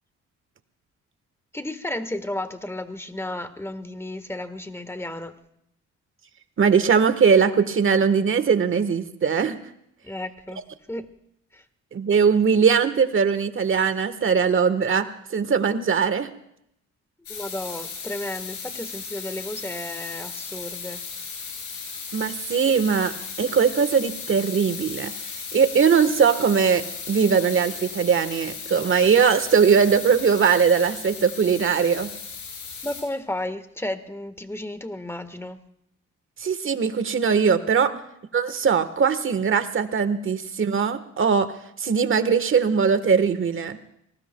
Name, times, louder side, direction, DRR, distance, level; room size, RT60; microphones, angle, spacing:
voice 1, 1.5-5.3 10.0-10.6 10.9-11.1 11.5-11.6 17.3-21.0 32.8-35.6 37.8-38.0, left 1 dB, 10° left, 10 dB, 1.4 m, -33 dB
voice 2, 6.6-9.6 11.9-16.3 22.1-23.1 23.4-25.1 25.5-32.1 36.4-37.9 38.3-41.5 41.8-43.8, right 6 dB, 45° right, 11 dB, 1.3 m, -20 dB
sound 1, 17.2-33.0, left 6 dB, 90° left, 6.9 m, -36 dB
29.5 x 19.0 x 2.3 m, 0.75 s
cardioid pair, 90°, 30 cm